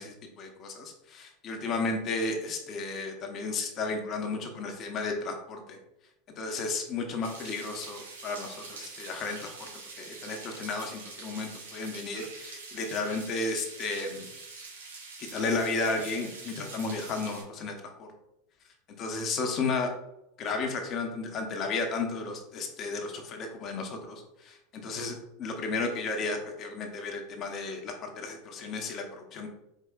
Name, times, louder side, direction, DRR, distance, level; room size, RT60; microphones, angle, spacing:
voice 1, 0.0-5.8 6.4-9.7 10.0-14.3 15.2-18.1 19.0-19.9 20.4-29.5, left 3 dB, 40° left, 3 dB, 1.0 m, -33 dB
sound 1, 7.2-17.4, right 4 dB, 80° right, 1.4 m, -45 dB
4.6 x 4.5 x 2.4 m, 0.87 s
hypercardioid pair, 85°, 0 cm